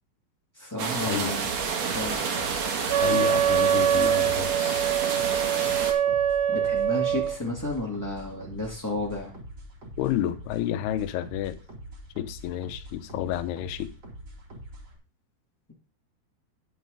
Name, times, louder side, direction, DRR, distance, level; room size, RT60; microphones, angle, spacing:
voice 1, 0.5-1.5 1.9-2.2 6.5-9.3, left 2 dB, 15° left, 0.7 m, -32 dB
sound 1, 0.8-5.9, right 5 dB, 55° right, 2.4 m, -29 dB
sound 2, 1.4-15.0, right 1 dB, 30° right, 2.6 m, -44 dB
Wind instrument woodwind instrument, 2.9-7.4, right 10 dB, 80° right, 2.6 m, -24 dB
voice 2, 3.0-4.8 10.0-11.6 12.2-13.9, left 12 dB, 80° left, 2.7 m, -30 dB
10.0 x 7.5 x 3.9 m
omnidirectional pair, 4.8 m